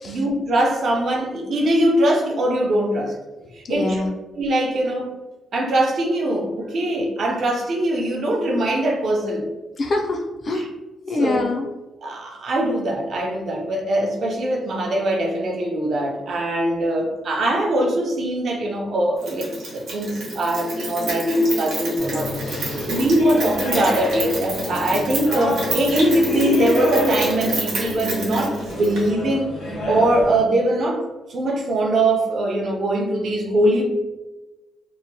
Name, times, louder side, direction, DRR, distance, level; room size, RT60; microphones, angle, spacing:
voice 1, 0.0-3.2 3.5-4.0 4.4-5.1 5.5-9.4 10.6-10.7 11.2-11.4 12.0-22.3 22.7-29.5 29.8-31.0 31.3-33.9, right 1 dB, 45° right, 0 dB, 0.5 m, -22 dB
voice 2, 3.4-4.2 9.8-10.7 11.1-11.7, left 2 dB, 35° left, 2 dB, 0.3 m, -25 dB
Rain, 19.2-29.1, right 1 dB, 80° right, 0.9 m, -29 dB
sound 1, 22.0-30.4, left 1 dB, 85° left, 1.2 m, -28 dB
2.8 x 2.1 x 2.7 m, 1.1 s
cardioid pair, 170°, 0 cm